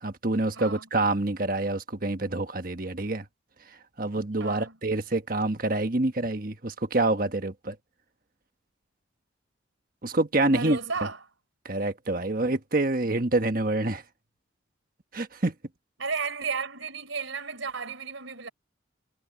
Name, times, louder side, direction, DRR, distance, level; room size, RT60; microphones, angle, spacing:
voice 1, 0.0-3.2 4.0-7.7 10.0-10.8 11.6-14.0 15.1-15.5, right 2 dB, 45° right, 1.4 m, -27 dB
voice 2, 0.5-0.9 4.4-4.8 10.5-11.2 16.0-18.5, right 5 dB, 85° right, 4.1 m, -33 dB
head